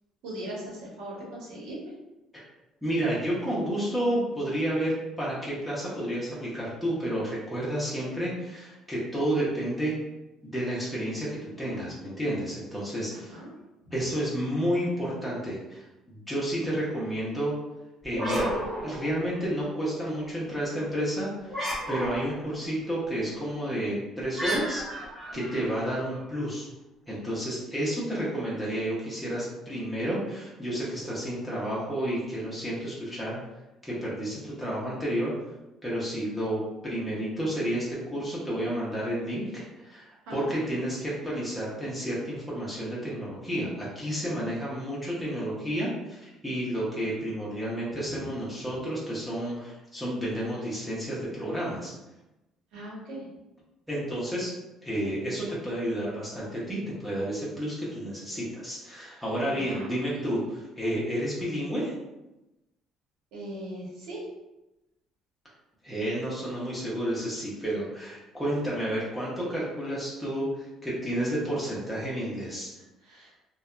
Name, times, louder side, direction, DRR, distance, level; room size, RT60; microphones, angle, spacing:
voice 1, 0.2-1.9 13.1-13.5 13.8-13.9 25.3-25.7 40.3-40.6 52.7-53.3 59.1-59.2 59.5-60.0 63.3-64.3 73.0-73.3, right 1 dB, 85° right, -4 dB, 0.9 m, -40 dB
voice 2, 2.8-9.9 10.4-13.1 13.9-17.6 18.0-18.5 18.8-21.6 21.9-24.8 25.3-26.7 27.1-33.4 33.8-35.3 35.8-51.9 53.9-54.5 54.8-61.9 65.8-72.7, right 1 dB, ahead, -8 dB, 0.7 m, -31 dB
sound 1, 18.0-19.6 21.5-22.5 24.3-26.2, equal, 20° right, 1.0 m, -33 dB
2.6 x 2.1 x 2.3 m, 0.98 s
cardioid pair, 115°, 0 cm